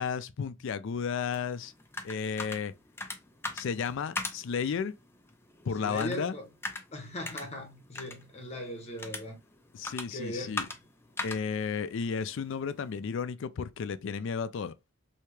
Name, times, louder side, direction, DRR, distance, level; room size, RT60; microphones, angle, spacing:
voice 1, 0.0-1.7 2.0-2.7 3.5-4.9 5.6-6.3 9.7-10.7 11.2-14.7, left 6 dB, 65° left, 0.4 m, -33 dB
sound 1, 1.3-13.0, left 3 dB, 10° left, 0.5 m, -42 dB
voice 2, 5.8-6.5 6.9-9.4 10.1-10.7, left 1 dB, 30° left, 0.9 m, -38 dB
3.3 x 2.8 x 3.1 m
head